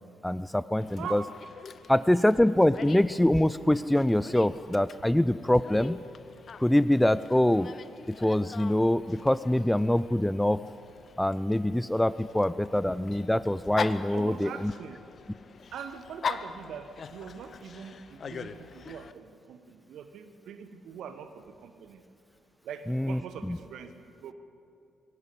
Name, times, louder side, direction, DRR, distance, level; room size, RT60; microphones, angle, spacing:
voice 1, 0.2-1.2 1.9-6.0 6.6-7.7 8.1-10.6 11.2-14.7 22.9-23.2 23.5-23.6, left 1 dB, 5° left, 16 dB, 0.5 m, -24 dB
Dog, 0.8-19.1, left 6 dB, 45° left, 0.9 m, -42 dB
voice 2, 1.0-1.3 14.1-15.0 15.7-22.0 22.6-24.3, right 7 dB, 60° right, 10 dB, 1.3 m, -43 dB
21.0 x 17.5 x 8.3 m, 2.6 s
figure-of-eight pair, 40°, 0 cm